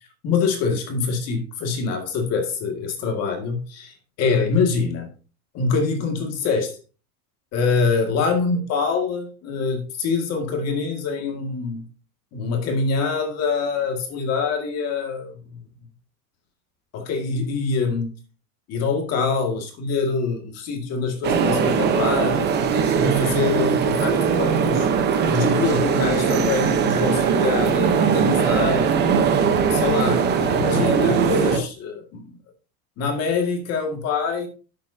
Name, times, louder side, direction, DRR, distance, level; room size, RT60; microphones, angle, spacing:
voice 1, 0.2-5.1 5.5-6.7 7.5-11.8 12.3-15.6 16.9-18.1 18.7-22.5 22.9-24.9 25.3-28.9 29.7-32.3 33.0-34.5, left 4 dB, 35° left, 4 dB, 2.0 m, -25 dB
sound 1, 21.2-31.6, right 6 dB, 25° right, 0.9 m, -20 dB
11.5 x 7.8 x 2.7 m, 0.35 s
supercardioid pair, 165°, 43 cm